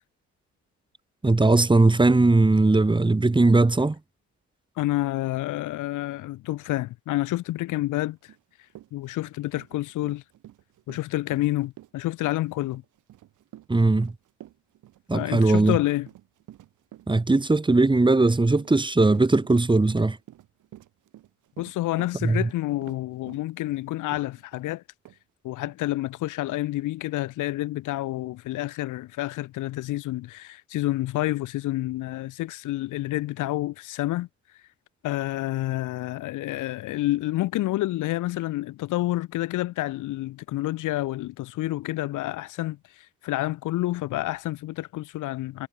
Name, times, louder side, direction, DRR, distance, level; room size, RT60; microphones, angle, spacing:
voice 1, 1.2-4.0 13.7-14.1 15.1-15.8 17.1-20.2 22.2-22.5, right 2 dB, 15° right, 1.9 m, -19 dB
voice 2, 4.8-8.2 8.9-10.2 10.9-12.8 15.1-16.1 21.6-24.8 25.4-34.3 35.0-45.7, left 16 dB, 90° left, 1.7 m, -29 dB
Run, 8.3-8.4 8.7-24.7 25.0-25.2 25.6-25.8, right 13 dB, 80° right, 6.7 m, -49 dB
cardioid pair, 90°, 30 cm